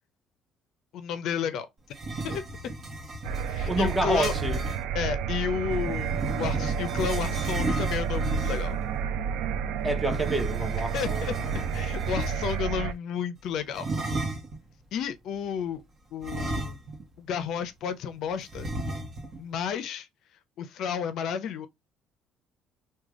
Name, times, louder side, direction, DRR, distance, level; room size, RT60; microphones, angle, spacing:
voice 1, 0.9-1.7 2.2-2.7 3.4-4.3 4.9-8.7 10.9-11.3 11.7-13.9 14.9-15.8 16.1-16.8 17.2-18.7 19.4-20.1 20.6-21.7, left 7 dB, 65° left, 0.4 m, -32 dB
sound 1, 1.9-4.8 5.7-8.8 10.0-12.7 13.7-14.6 16.2-17.1 17.4-17.5 18.5-19.4, right 1 dB, 40° right, 1.0 m, -34 dB
sound 2, 3.2-12.9, right 7 dB, 80° right, 0.3 m, -30 dB
voice 2, 3.7-4.6 9.8-11.4, right 1 dB, 10° right, 0.7 m, -28 dB
3.3 x 2.2 x 3.5 m
cardioid pair, 125°, 0 cm